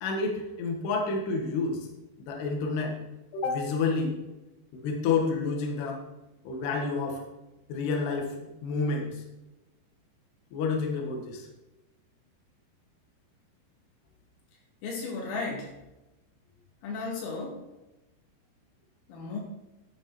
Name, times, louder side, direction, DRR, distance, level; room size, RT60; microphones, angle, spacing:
voice 1, 0.0-1.8 2.3-2.9 3.3-4.2 4.7-6.0 6.4-7.2 7.7-9.2 10.5-11.5, left 4 dB, 65° left, 1 dB, 3.4 m, -29 dB
voice 2, 14.8-15.8 16.8-17.7 19.1-19.4, left 3 dB, 85° left, -1 dB, 5.4 m, -34 dB
12.0 x 8.5 x 4.3 m, 1.0 s
omnidirectional pair, 5.9 m